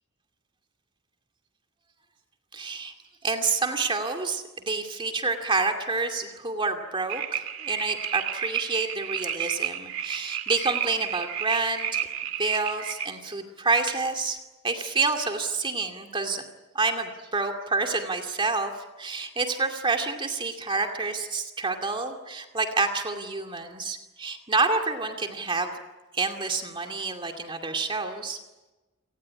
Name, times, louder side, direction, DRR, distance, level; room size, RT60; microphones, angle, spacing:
voice 1, 2.5-2.9 3.2-12.0 12.4-14.4 14.6-16.4 16.7-25.7 26.1-28.4, right 3 dB, 25° right, 5 dB, 2.4 m, -28 dB
sound 1, 7.1-13.1, right 9 dB, 70° right, 2.0 m, -32 dB
29.5 x 18.5 x 9.9 m, 1.1 s
head